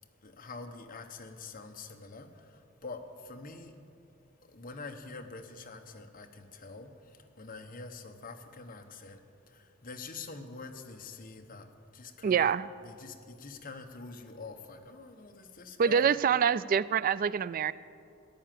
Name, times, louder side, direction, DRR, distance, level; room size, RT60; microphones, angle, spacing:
voice 1, 0.2-3.7 4.5-9.2 9.5-12.5 12.8-16.2, left 3 dB, 40° left, 5 dB, 1.0 m, -46 dB
voice 2, 12.2-12.7 15.8-17.7, right 7 dB, 45° right, 17 dB, 0.3 m, -26 dB
14.0 x 10.0 x 7.6 m, 2.6 s
head